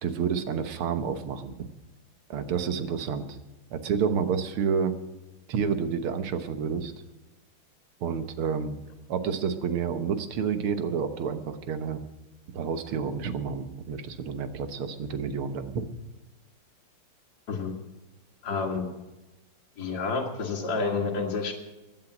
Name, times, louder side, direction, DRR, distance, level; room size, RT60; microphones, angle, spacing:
voice 1, 0.0-1.7 2.3-3.4 3.7-4.9 5.5-6.9 8.0-8.8 9.1-12.0 12.5-15.8, right 6 dB, 90° right, 10 dB, 2.1 m, -29 dB
voice 2, 18.4-18.9 19.8-21.5, left 4 dB, 50° left, -2 dB, 2.2 m, -29 dB
16.0 x 10.5 x 6.0 m, 1.1 s
omnidirectional pair, 2.3 m